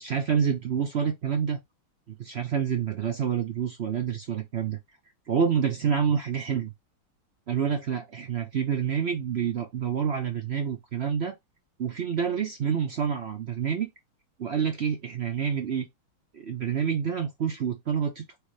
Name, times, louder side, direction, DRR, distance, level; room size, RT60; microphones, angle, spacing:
voice 1, 0.0-1.6 2.2-4.8 5.3-6.7 7.5-11.3 11.8-13.9 14.4-15.9 16.3-18.4, right 7 dB, 80° right, 0.5 m, -28 dB
4.6 x 3.3 x 3.2 m
omnidirectional pair, 2.2 m